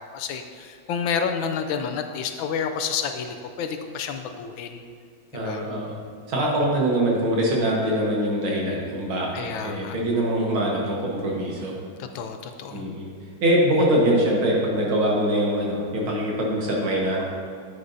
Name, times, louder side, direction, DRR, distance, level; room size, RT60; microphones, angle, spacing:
voice 1, 0.0-4.8 5.3-5.6 6.4-6.5 9.3-10.0 12.0-12.9, left 6 dB, 80° left, 6 dB, 1.3 m, -30 dB
voice 2, 5.3-5.9 6.3-11.7 12.7-13.1 13.4-17.2, right 1 dB, 80° right, -3 dB, 2.3 m, -23 dB
9.6 x 8.6 x 2.7 m, 2.2 s
omnidirectional pair, 2.2 m